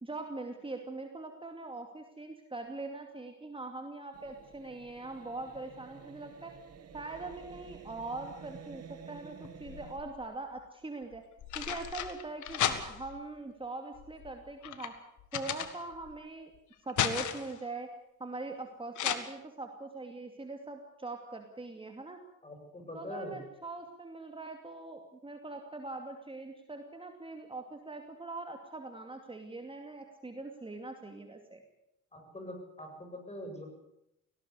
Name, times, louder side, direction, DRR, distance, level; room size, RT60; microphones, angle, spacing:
voice 1, 0.0-6.5 6.9-11.2 11.5-14.9 15.3-16.5 16.8-17.9 18.2-22.2 22.9-31.6, right 3 dB, 15° right, 4 dB, 2.5 m, -42 dB
sound 1, 4.1-10.0, right 7 dB, 55° right, 2.5 m, -51 dB
sound 2, 9.4-10.2 11.1-13.2 13.9-16.2 16.6-17.6 19.0-19.2, left 10 dB, 75° left, 1.9 m, -35 dB
voice 2, 22.4-23.4 32.1-33.7, equal, 20° left, 4 dB, 7.7 m, -43 dB
18.5 x 17.5 x 8.4 m, 0.82 s
cardioid pair, 90°, 30 cm